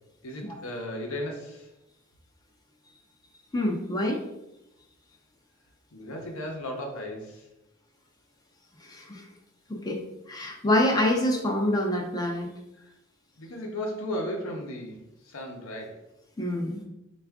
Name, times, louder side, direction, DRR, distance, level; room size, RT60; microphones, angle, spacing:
voice 1, 0.2-1.7 5.9-7.4 12.8-12.9 13.4-16.0, left 1 dB, 75° left, 1 dB, 0.7 m, -35 dB
voice 2, 3.5-4.2 8.8-9.3 9.7-10.0 10.3-12.5 16.4-16.8, left 1 dB, 15° left, 1 dB, 0.4 m, -26 dB
4.4 x 2.4 x 3.5 m, 0.90 s
head